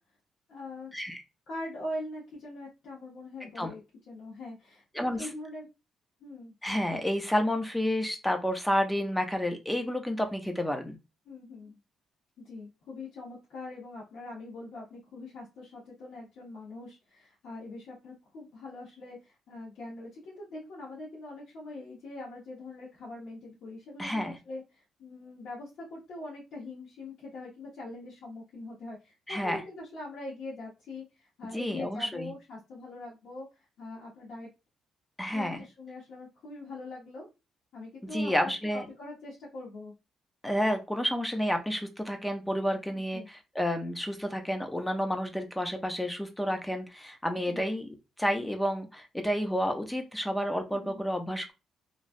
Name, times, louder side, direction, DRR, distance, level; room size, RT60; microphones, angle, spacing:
voice 1, 0.5-0.9 1.5-5.7 6.2-6.5 11.2-11.8 12.4-34.5 35.3-37.3 37.7-39.9 42.9-43.3 47.3-47.6 50.7-51.0, left 2 dB, 75° left, -6 dB, 1.2 m, -43 dB
voice 2, 3.4-3.7 4.9-5.3 6.6-11.0 24.0-24.3 29.3-29.6 31.5-32.3 35.2-35.6 38.1-38.9 40.4-47.9 48.2-51.5, equal, 5° left, 5 dB, 0.6 m, -30 dB
3.0 x 2.3 x 2.6 m, 0.27 s
cardioid pair, 90°, 0 cm